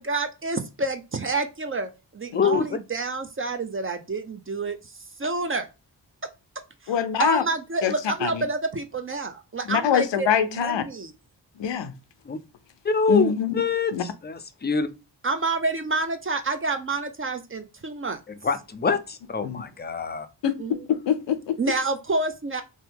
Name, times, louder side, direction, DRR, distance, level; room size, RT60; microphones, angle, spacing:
voice 1, 0.0-4.9 5.2-5.7 6.8-6.9 7.2-11.1 15.2-18.2 20.6-20.8 21.6-22.6, right 3 dB, 30° right, 0.5 m, -28 dB
voice 2, 2.3-2.8 12.3-12.4 12.8-14.9 18.4-20.3, left 5 dB, 25° left, 0.4 m, -25 dB
voice 3, 6.9-7.4 7.8-7.9 8.2-8.4 9.7-10.8 11.6-11.9 13.1-13.5 13.9-14.0 19.4-19.6 20.4-20.5 20.9-21.6, left 8 dB, 80° left, 0.6 m, -24 dB
3.0 x 2.2 x 3.4 m
cardioid pair, 50°, 43 cm